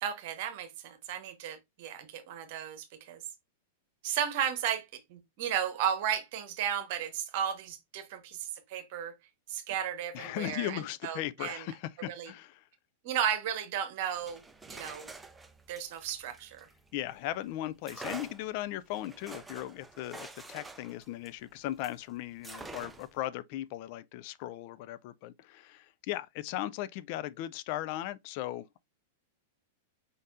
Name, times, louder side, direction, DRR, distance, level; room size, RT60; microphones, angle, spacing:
voice 1, 0.0-3.2 4.0-9.1 9.5-11.7 12.0-12.3 13.0-15.1 15.7-16.7, right 9 dB, 55° right, 1.2 m, -34 dB
voice 2, 10.1-12.6 16.9-28.8, left 14 dB, 50° left, 0.4 m, -37 dB
sound 1, 14.1-17.2 17.8-22.0 22.4-23.2, right 3 dB, 10° right, 0.6 m, -47 dB
5.1 x 4.1 x 2.5 m
figure-of-eight pair, 100°, 0 cm